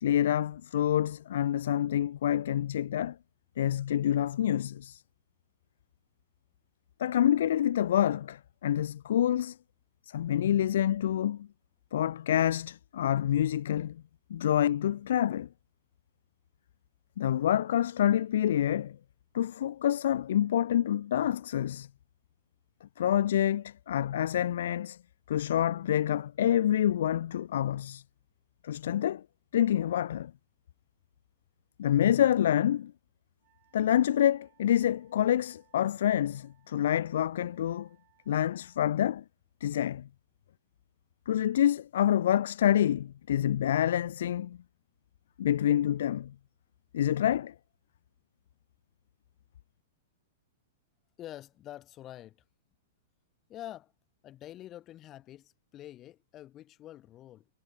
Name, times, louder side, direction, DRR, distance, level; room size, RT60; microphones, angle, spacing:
voice 1, 0.0-3.2 3.6-5.0 7.0-9.6 10.1-11.5 11.9-14.0 14.3-15.5 17.2-19.0 19.3-21.9 22.8-25.0 25.3-28.0 28.6-29.2 29.5-30.3 31.8-32.9 33.7-37.9 38.3-39.2 39.6-40.1 41.3-44.6 45.4-46.3 46.9-47.5, left 11 dB, 70° left, 0.4 m, -27 dB
Wind instrument woodwind instrument, 33.4-38.9, right 25 dB, 30° right, 7.6 m, -69 dB
voice 2, 51.2-52.4 53.5-53.9 54.2-57.5, left 13 dB, 20° left, 1.5 m, -46 dB
supercardioid pair, 165°, 0 cm